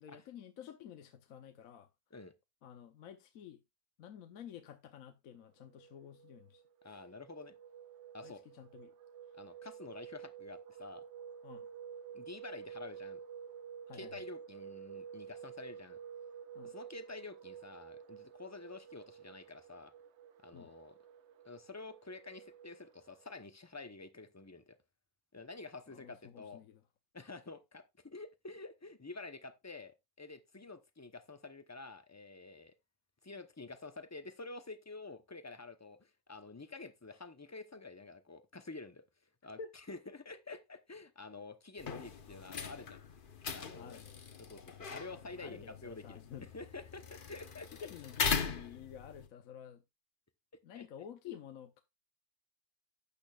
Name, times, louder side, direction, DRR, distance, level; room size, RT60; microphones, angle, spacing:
voice 1, 0.0-1.9 2.6-3.6 4.0-7.0 8.2-8.9 11.4-11.7 13.9-14.1 16.5-16.7 20.5-20.7 25.9-26.8 39.6-39.7 43.7-44.1 45.3-46.4 47.8-49.8 50.6-51.8, left 8 dB, 65° left, 1.2 m, -51 dB
sound 1, 5.6-23.3, right 8 dB, 60° right, 0.9 m, -51 dB
voice 2, 6.8-7.5 8.1-8.4 9.3-11.0 12.1-13.2 13.9-16.0 16.6-19.9 20.4-21.0 21.4-24.8 25.3-26.6 27.1-32.7 33.2-39.0 39.4-39.6 39.9-43.0 43.5-44.0 44.4-47.7 50.7-50.8, left 3 dB, 20° left, 0.5 m, -49 dB
sound 2, 41.8-49.3, left 5 dB, 40° left, 0.9 m, -40 dB
12.0 x 8.6 x 2.4 m
omnidirectional pair, 1.6 m